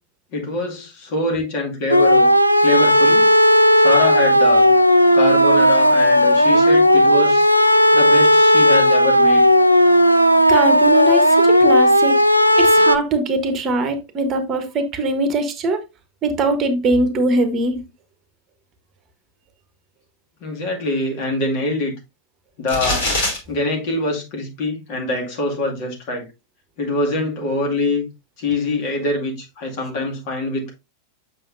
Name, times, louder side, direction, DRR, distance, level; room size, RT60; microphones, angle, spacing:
voice 1, 0.3-2.3 2.6-3.3 3.7-4.7 5.1-7.5 7.9-9.4 20.4-21.9 22.6-23.1 23.5-26.3 26.8-28.1 28.4-30.7, left 2 dB, 45° left, 2.2 m, -24 dB
sound 1, 1.9-13.0, equal, 90° left, 0.4 m, -14 dB
voice 2, 10.5-12.2 12.6-15.8 16.2-17.8, right 2 dB, 30° right, 1.1 m, -21 dB
sound 2, 22.7-23.4, left 1 dB, 65° left, 3.0 m, -21 dB
7.6 x 5.8 x 2.6 m
figure-of-eight pair, 90°, 0 cm